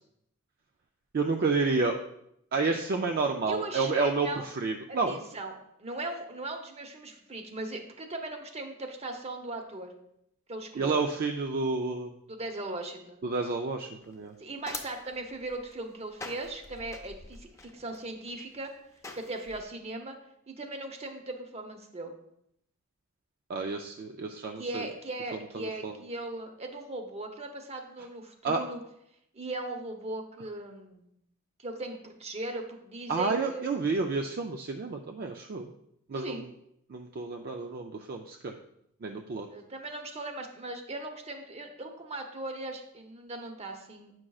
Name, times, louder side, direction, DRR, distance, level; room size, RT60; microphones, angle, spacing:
voice 1, 1.1-2.0 2.5-5.2 10.7-12.1 13.2-14.3 23.5-24.9 25.5-25.9 28.4-28.6 33.1-35.7 36.1-36.5 36.9-38.6 39.0-39.5, right 4 dB, 45° right, 3 dB, 0.4 m, -30 dB
voice 2, 3.5-4.5 4.9-9.9 10.5-11.0 12.3-13.2 14.4-18.7 19.1-20.2 20.5-22.1 24.6-28.8 29.3-31.1 31.6-33.7 36.1-36.5 39.5-44.1, right 2 dB, 30° right, 5 dB, 0.8 m, -38 dB
sound 1, 14.0-19.6, left 3 dB, 15° left, 0.6 m, -46 dB
8.5 x 6.1 x 2.3 m, 0.77 s
head